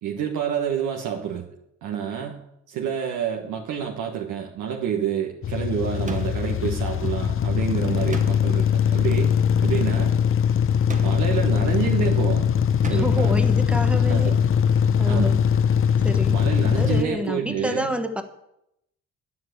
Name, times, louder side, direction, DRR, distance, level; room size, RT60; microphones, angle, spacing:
voice 1, 0.0-1.4 1.8-2.4 2.7-9.3 9.6-10.1 11.0-12.5 12.8-13.4 13.9-14.4 15.1-15.4 16.3-17.9, right 8 dB, 85° right, 1 dB, 1.3 m, -28 dB
sound 1, 5.4-17.0, left 8 dB, 45° left, 0.7 m, -21 dB
sound 2, 6.1-6.6 8.1-8.7 10.9-11.4 12.8-13.3, right 3 dB, 25° right, 1.3 m, -37 dB
voice 2, 12.9-14.3 15.0-15.4 16.0-16.4 16.6-18.2, equal, 5° right, 7 dB, 1.2 m, -28 dB
10.0 x 7.7 x 7.9 m, 0.81 s
cardioid pair, 90°, 30 cm